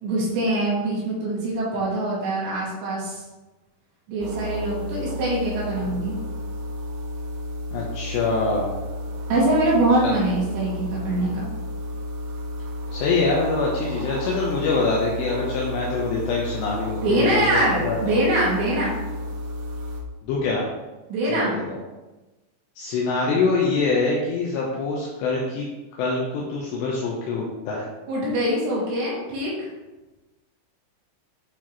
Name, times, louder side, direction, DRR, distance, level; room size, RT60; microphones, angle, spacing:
voice 1, 0.0-3.2 4.1-6.2 9.3-11.5 17.0-18.9 21.1-21.5 28.1-29.7, right 1 dB, 70° right, -5 dB, 3.6 m, -23 dB
sound 1, 4.2-20.0, left 1 dB, 85° right, 2.1 m, -32 dB
voice 2, 7.7-8.8 10.0-10.2 12.9-17.5 17.8-18.0 20.2-20.7 21.3-21.8 22.8-25.7 26.0-27.9, left 4 dB, 80° left, -3 dB, 2.7 m, -24 dB
9.2 x 4.6 x 3.0 m, 1.1 s
omnidirectional pair, 5.7 m